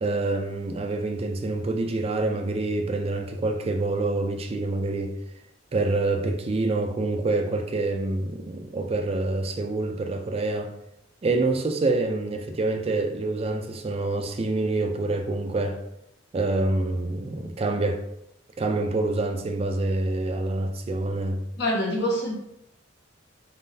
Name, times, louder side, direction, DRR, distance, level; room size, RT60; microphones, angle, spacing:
voice 1, 0.0-5.2 5.7-10.7 11.2-15.8 16.3-18.1 18.6-21.4, right 2 dB, 30° right, 0.4 m, -26 dB
voice 2, 21.5-22.3, equal, 60° left, 1.4 m, -25 dB
4.3 x 3.7 x 2.7 m
head